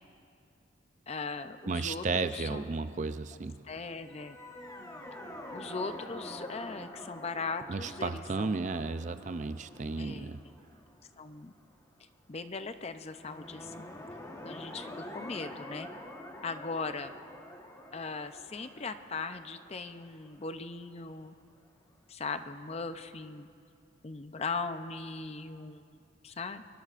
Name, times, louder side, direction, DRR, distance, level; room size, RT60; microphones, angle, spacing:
voice 1, 1.1-2.6 3.6-4.4 5.5-8.6 10.0-10.3 11.2-11.5 12.3-13.9 14.4-15.9 16.4-17.2 17.9-21.4 22.1-23.5 24.0-25.8 26.2-26.6, left 4 dB, 30° left, 9 dB, 0.5 m, -39 dB
voice 2, 1.7-3.6 7.7-10.4, right 4 dB, 35° right, 11 dB, 0.4 m, -33 dB
sound 1, 4.0-11.2 13.1-20.9, left 1 dB, 15° left, 1.2 m, -47 dB
24.0 x 21.5 x 2.5 m, 2.4 s
head